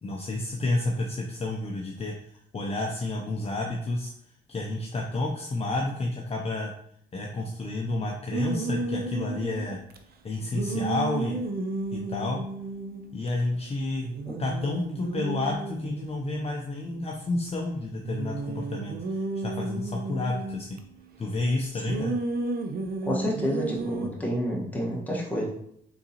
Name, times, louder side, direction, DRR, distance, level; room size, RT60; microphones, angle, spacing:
voice 1, 0.0-2.1 2.5-4.1 4.5-6.7 7.1-9.8 10.2-11.4 11.9-12.4 13.1-14.1 14.4-20.8 21.2-22.1, left 2 dB, 30° left, 0 dB, 0.6 m, -30 dB
sound 1, 8.3-10.0 10.5-13.4 13.7-13.8 14.0-17.5 18.0-20.8 21.8-24.1, right 3 dB, 50° right, 0.5 m, -33 dB
voice 2, 23.0-25.4, equal, 10° left, -4 dB, 1.4 m, -29 dB
3.9 x 3.6 x 2.9 m, 0.70 s
cardioid pair, 90°, 20 cm